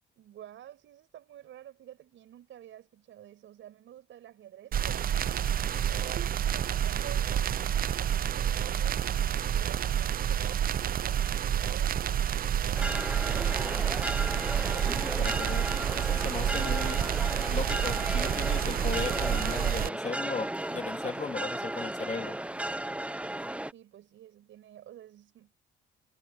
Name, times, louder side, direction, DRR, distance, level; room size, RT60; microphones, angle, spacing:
voice 1, 0.2-6.1 6.5-13.9 23.6-25.5, right 11 dB, 75° right, 6.9 m, -50 dB
sound 1, 4.7-19.9, right 10 dB, 45° right, 0.5 m, -29 dB
sound 2, 12.7-23.7, right 1 dB, 5° right, 0.9 m, -35 dB
voice 2, 14.7-17.0 17.5-22.4, left 5 dB, 35° left, 2.7 m, -37 dB
cardioid pair, 90°, 20 cm